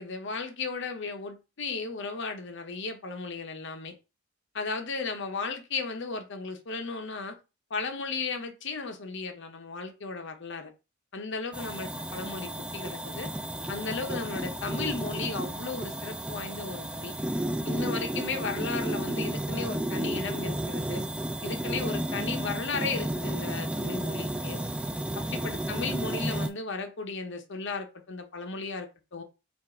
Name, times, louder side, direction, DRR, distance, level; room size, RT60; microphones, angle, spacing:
voice 1, 0.0-3.9 4.5-7.4 7.7-10.7 11.1-13.3 13.7-17.1 17.6-21.0 21.4-24.6 25.1-29.2, left 4 dB, 55° left, 0.8 m, -35 dB
sound 1, 11.5-26.5, right 1 dB, 5° right, 0.3 m, -32 dB
4.4 x 2.5 x 4.3 m
head